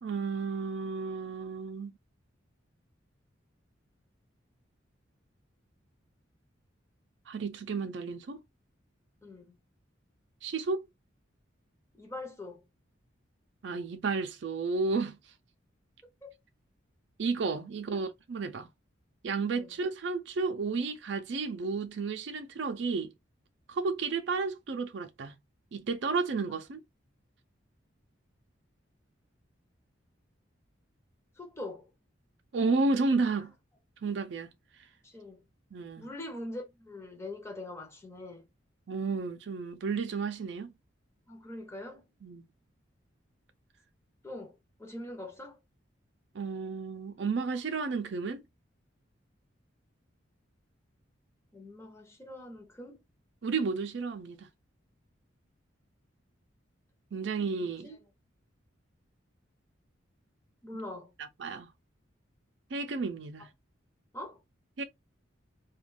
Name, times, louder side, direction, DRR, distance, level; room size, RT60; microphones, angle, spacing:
voice 1, 0.0-1.9 7.3-8.4 10.4-10.8 13.6-15.2 17.2-18.7 19.2-23.1 23.7-25.4 25.7-26.8 32.5-33.5 34.0-34.5 35.7-36.1 38.9-40.7 42.2-42.4 46.3-48.4 53.4-54.5 57.1-57.9 61.4-61.7 62.7-63.5 64.8-64.9, right 4 dB, 65° right, 0.4 m, -32 dB
voice 2, 9.2-9.6 11.9-12.6 16.2-16.3 17.9-18.0 19.6-19.7 31.4-31.9 33.2-33.3 35.0-35.4 36.0-38.5 41.3-42.0 44.2-45.6 51.5-53.0 57.6-58.0 60.6-61.1 63.4-63.5 64.1-64.4, left 1 dB, 15° left, 0.7 m, -43 dB
2.4 x 2.2 x 3.3 m
head